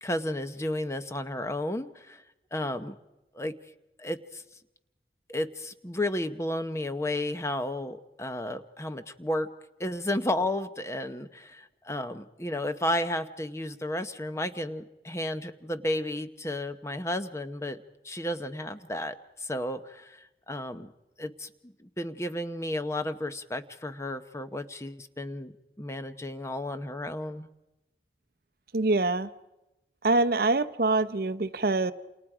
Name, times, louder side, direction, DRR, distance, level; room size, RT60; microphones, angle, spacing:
voice 1, 0.0-2.2 2.5-2.9 3.3-3.5 4.0-4.4 5.3-9.5 9.8-17.8 18.0-20.9 21.2-25.5 25.8-27.5, left 1 dB, 15° left, 10 dB, 0.9 m, -33 dB
voice 2, 28.7-29.3 30.0-31.9, right 2 dB, 55° right, 10 dB, 0.8 m, -25 dB
28.5 x 28.5 x 5.0 m, 0.95 s
head